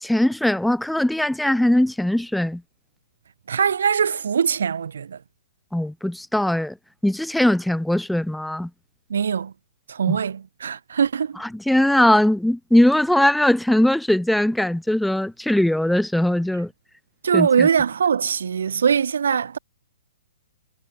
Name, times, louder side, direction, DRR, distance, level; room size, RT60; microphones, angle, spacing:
voice 1, 0.0-2.6 5.7-6.7 7.0-8.7 11.4-16.7 17.3-17.7, left 1 dB, ahead, 2.1 m, -20 dB
voice 2, 3.5-5.2 9.1-9.5 9.9-11.4 17.2-19.6, right 7 dB, 60° right, 2.5 m, -22 dB
figure-of-eight pair, 120°, 0 cm